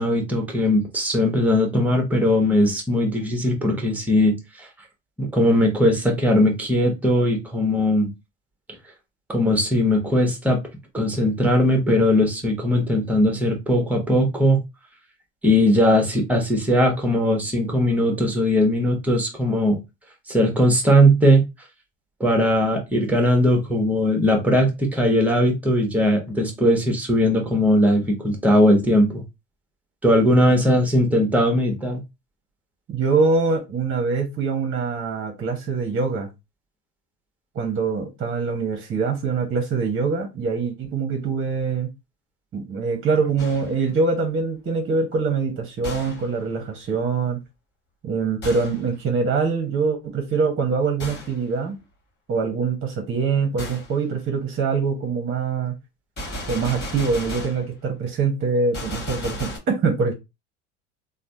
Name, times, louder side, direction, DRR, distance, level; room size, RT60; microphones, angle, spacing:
voice 1, 0.0-4.7 5.2-8.1 9.3-10.6 10.9-14.6 15.4-19.8 20.3-21.4 22.2-29.2 30.0-32.0, equal, 5° right, 1.1 m, -19 dB
voice 2, 30.3-30.8 32.9-36.3 37.5-41.9 42.5-47.4 48.0-51.7 52.3-55.7 56.5-60.1, right 4 dB, 35° right, 1.0 m, -24 dB
Gunshot gunfire, 43.4-43.9 45.8-46.4 48.4-48.9 51.0-51.4 53.6-53.9 56.2-57.7 58.7-59.6, left 1 dB, 30° left, 1.6 m, -34 dB
3.2 x 2.2 x 2.6 m
hypercardioid pair, 80°, 37 cm